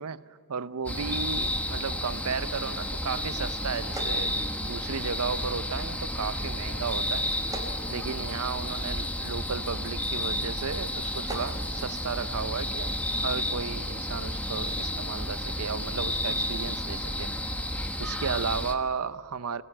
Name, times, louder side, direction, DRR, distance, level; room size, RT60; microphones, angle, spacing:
voice 1, 0.0-7.3 7.9-17.3 18.0-19.6, right 5 dB, 85° right, 0.7 m, -34 dB
sound 1, 0.9-18.8, left 1 dB, 5° left, 1.1 m, -31 dB
sound 2, 3.7-5.1 7.2-8.8 10.9-11.6, right 2 dB, 15° right, 3.3 m, -41 dB
24.5 x 17.0 x 8.8 m
head